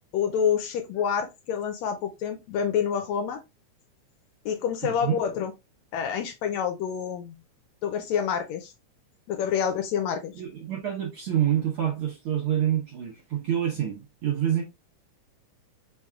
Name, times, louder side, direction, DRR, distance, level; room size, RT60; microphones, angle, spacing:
voice 1, 0.1-3.4 4.4-5.5 5.9-7.3 7.8-8.7 9.3-10.3, left 8 dB, 75° left, 1.7 m, -27 dB
voice 2, 4.8-5.2 10.3-14.6, right 10 dB, 65° right, 1.4 m, -27 dB
4.6 x 4.3 x 2.3 m
omnidirectional pair, 3.5 m